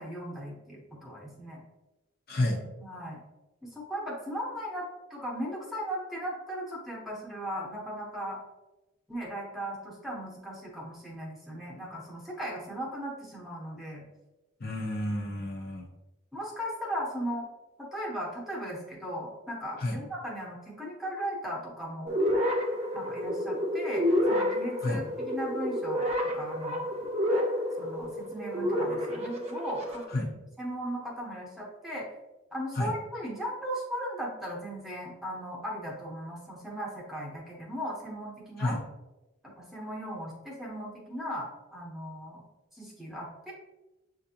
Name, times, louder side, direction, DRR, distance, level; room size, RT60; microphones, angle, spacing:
voice 1, 0.0-1.6 2.8-3.2 3.6-8.4 9.1-14.0 16.3-17.5 17.8-22.1 22.9-26.0 26.3-26.9 27.8-30.2 30.6-32.0 32.5-38.8 39.4-42.4 42.7-43.5, equal, ahead, -4 dB, 0.9 m, -37 dB
voice 2, 2.3-2.6 14.6-15.9 19.8-20.0 24.8-25.0 30.1-30.3 32.8-32.9 38.6-38.8, left 1 dB, 45° left, -1 dB, 0.7 m, -30 dB
sound 1, 22.1-30.0, left 1 dB, 30° right, 0.7 m, -29 dB
7.1 x 2.5 x 2.8 m, 1.0 s
head